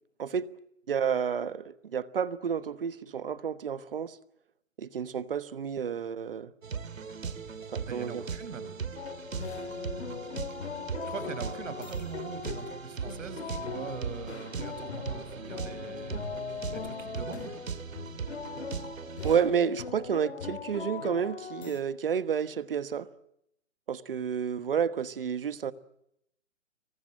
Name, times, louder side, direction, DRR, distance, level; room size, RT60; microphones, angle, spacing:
voice 1, 0.9-4.2 4.8-6.5 7.7-8.2 19.2-23.1 23.9-25.7, right 7 dB, 45° right, 1.3 m, -30 dB
sound 1, 6.6-19.4, right 6 dB, 90° right, 2.5 m, -39 dB
voice 2, 7.9-8.8 11.0-16.3 16.7-17.5, right 4 dB, 70° right, 5.7 m, -41 dB
sound 2, 9.0-21.8, left 6 dB, 55° left, 2.1 m, -40 dB
26.0 x 24.0 x 7.4 m
hypercardioid pair, 175°, 39 cm